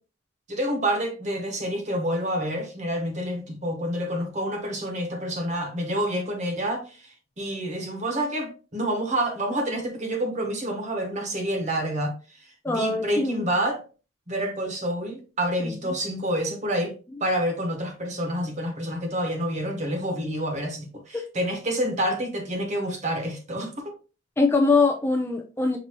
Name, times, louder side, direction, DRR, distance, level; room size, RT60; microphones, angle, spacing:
voice 1, 0.5-12.1 12.7-13.8 14.3-16.9 17.2-23.9, right 1 dB, 35° right, 1.0 m, -28 dB
voice 2, 12.6-13.4 15.6-15.9 21.1-21.2 24.4-25.8, left 3 dB, 10° left, 0.4 m, -23 dB
5.9 x 2.7 x 2.9 m
head